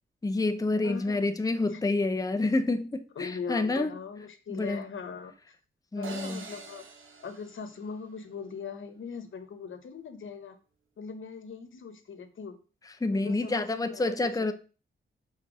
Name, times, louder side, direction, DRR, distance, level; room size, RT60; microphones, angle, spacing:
voice 1, 0.2-3.9 4.5-4.8 5.9-6.4 13.0-14.5, left 2 dB, 20° left, 0.7 m, -28 dB
voice 2, 0.8-1.3 1.7-1.8 3.1-5.3 6.0-6.9 7.2-10.6 11.0-12.6 13.1-14.5, left 5 dB, 80° left, 1.1 m, -40 dB
sound 1, 6.0-8.4, right 5 dB, 80° right, 1.1 m, -45 dB
5.9 x 4.2 x 6.2 m
wide cardioid pair, 90°, 20 cm